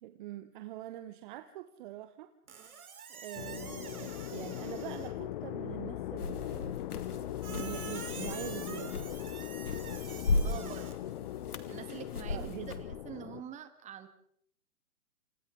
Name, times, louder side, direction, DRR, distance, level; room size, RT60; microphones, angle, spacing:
voice 1, 0.0-2.3 3.1-6.8 7.5-9.1 10.5-10.7 12.3-12.7, right 14 dB, 35° right, 10 dB, 1.2 m, -44 dB
Squeak, 2.5-5.2 7.4-10.9, right 7 dB, 70° right, 3.5 m, -47 dB
sound 1, 3.3-13.4, left 13 dB, 35° left, 0.9 m, -40 dB
sound 2, 6.2-12.9, left 3 dB, 80° left, 2.5 m, -37 dB
voice 2, 10.4-10.9 11.7-12.6 13.0-14.1, right 9 dB, 15° right, 10 dB, 1.8 m, -45 dB
29.0 x 26.5 x 3.9 m, 0.66 s
hypercardioid pair, 130°, 44 cm